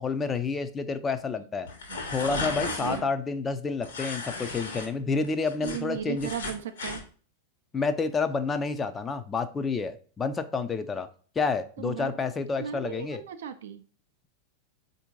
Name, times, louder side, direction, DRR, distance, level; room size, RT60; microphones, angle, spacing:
voice 1, 0.0-1.7 2.1-6.3 7.7-11.1 11.4-13.2, left 4 dB, 20° left, 9 dB, 0.4 m, -29 dB
sound 1, 1.6-3.0 3.8-4.9 5.2-7.0, left 3 dB, 65° left, 1.1 m, -35 dB
voice 2, 2.7-3.1 5.6-7.0 11.8-12.1 12.6-13.8, right 9 dB, 60° right, 9 dB, 0.4 m, -36 dB
4.3 x 2.7 x 3.5 m, 0.41 s
figure-of-eight pair, 90°, 0 cm